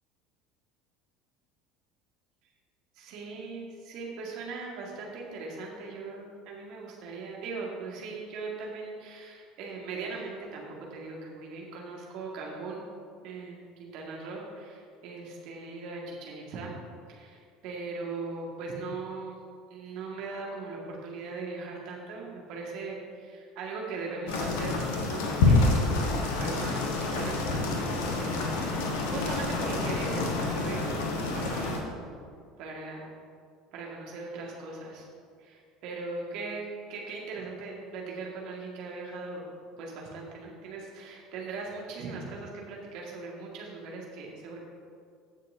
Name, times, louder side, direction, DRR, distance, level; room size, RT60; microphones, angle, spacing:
voice 1, 3.0-12.9 13.2-16.7 17.1-19.4 19.7-31.9 32.6-33.1 33.7-35.1 35.4-39.4 39.8-44.6, right 3 dB, 55° right, -2 dB, 1.9 m, -39 dB
sound 1, 24.3-31.8, left 3 dB, 65° left, 1.2 m, -28 dB
16.5 x 6.5 x 2.7 m, 2.2 s
figure-of-eight pair, 65°, 0 cm